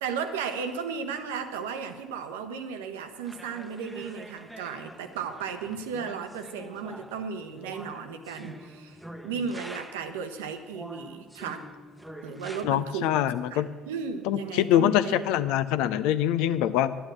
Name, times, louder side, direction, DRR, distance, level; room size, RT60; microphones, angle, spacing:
voice 1, 0.0-9.0 9.2-11.7 12.2-13.1 13.5-15.2, right 6 dB, 70° right, 8 dB, 0.9 m, -35 dB
sound 1, 3.2-10.2 10.7-12.6, equal, 5° right, 1.0 m, -45 dB
voice 2, 12.6-13.7 14.3-17.0, left 11 dB, 60° left, 14 dB, 0.5 m, -24 dB
12.0 x 9.5 x 7.6 m, 1.3 s
figure-of-eight pair, 55°, 0 cm